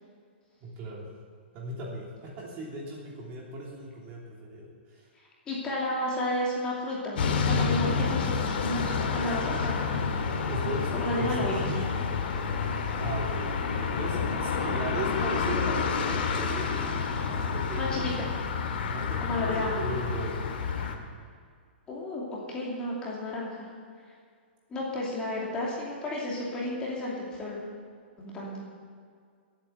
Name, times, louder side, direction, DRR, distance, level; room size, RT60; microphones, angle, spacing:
voice 1, 0.6-1.0 1.5-5.1 10.5-11.9 13.0-13.5 14.0-18.1 18.9-20.5, right 1 dB, 25° right, -3 dB, 3.0 m, -37 dB
voice 2, 5.5-10.0 10.9-11.6 13.6-13.7 17.8-18.3 19.2-19.8 21.9-23.7 24.7-27.6 28.2-28.6, left 1 dB, 15° left, -5 dB, 2.7 m, -32 dB
sound 1, 7.2-21.0, left 5 dB, 60° left, 2.0 m, -29 dB
21.5 x 8.8 x 7.0 m, 2.1 s
hypercardioid pair, 170°, 6 cm